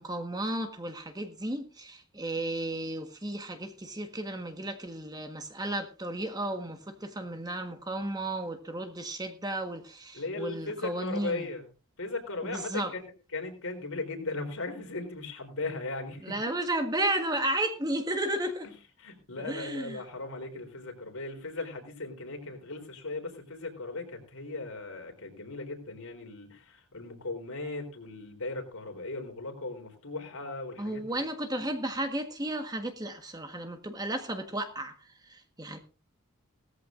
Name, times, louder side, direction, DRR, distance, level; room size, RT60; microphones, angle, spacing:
voice 1, 0.0-11.4 12.4-12.9 16.2-18.7 19.4-20.0 30.8-34.9 35.3-35.8, right 1 dB, 20° right, 1.5 m, -33 dB
voice 2, 10.1-11.6 12.0-16.4 18.6-31.2, left 2 dB, 85° left, 3.8 m, -38 dB
18.0 x 14.0 x 2.6 m
head